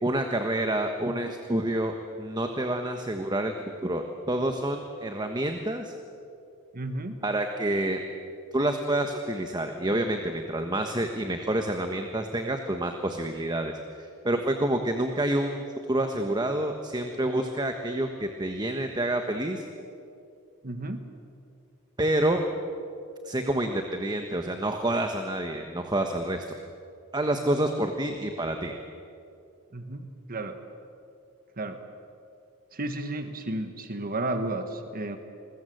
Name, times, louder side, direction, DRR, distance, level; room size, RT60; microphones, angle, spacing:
voice 1, 0.0-3.5 3.8-5.9 7.2-8.0 8.5-13.7 14.2-15.6 15.9-19.6 22.0-22.4 23.2-26.4 27.1-28.7, right 1 dB, 20° right, 5 dB, 1.3 m, -28 dB
voice 2, 6.7-7.2 20.6-21.0 29.7-30.6 31.6-31.8 32.7-35.2, right 2 dB, 40° right, 7 dB, 1.6 m, -33 dB
29.0 x 21.5 x 7.9 m, 2.5 s
head